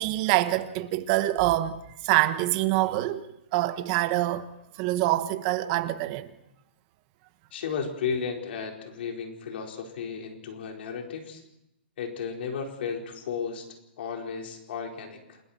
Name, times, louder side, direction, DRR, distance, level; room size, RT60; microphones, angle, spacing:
voice 1, 0.0-3.2 3.5-4.5 4.8-6.3, right 16 dB, 35° right, 1.2 m, -25 dB
voice 2, 7.5-11.4 12.0-15.4, left 6 dB, 65° left, 4.6 m, -34 dB
29.5 x 21.0 x 4.4 m
hypercardioid pair, 155°, 6 cm